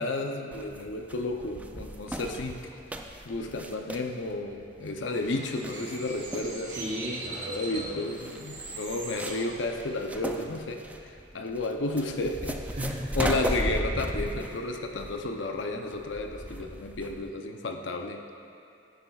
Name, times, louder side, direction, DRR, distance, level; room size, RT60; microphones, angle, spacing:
voice 1, 0.0-2.6 3.2-6.8 7.5-12.6 13.2-18.2, left 2 dB, 85° left, 4 dB, 0.6 m, -32 dB
sound 1, 0.5-17.3, right 1 dB, 10° right, 0.3 m, -36 dB
Bird, 5.1-10.1, right 2 dB, 80° right, 1.7 m, -42 dB
voice 2, 6.7-8.0 12.8-13.1, equal, 35° right, -6 dB, 1.0 m, -35 dB
10.5 x 9.3 x 2.4 m, 2.7 s
head